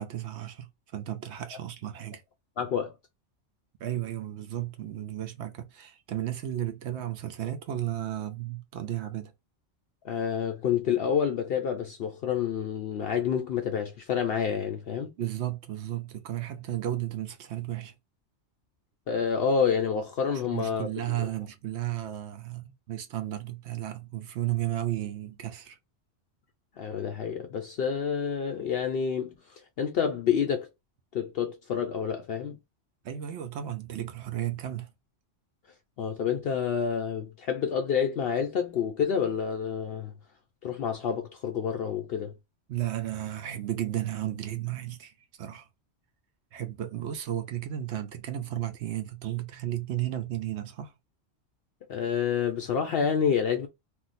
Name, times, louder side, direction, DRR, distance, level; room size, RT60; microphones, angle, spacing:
voice 1, 0.0-2.2 3.8-9.3 15.2-17.9 20.5-25.8 33.0-34.9 42.7-45.7 46.5-50.9, right 12 dB, 70° right, 0.8 m, -34 dB
voice 2, 2.6-2.9 10.0-15.1 19.1-20.9 21.2-21.3 26.8-30.7 31.1-32.6 36.0-40.1 40.6-42.3 51.9-53.7, left 7 dB, 65° left, 0.7 m, -28 dB
2.6 x 2.0 x 3.9 m
omnidirectional pair, 1.3 m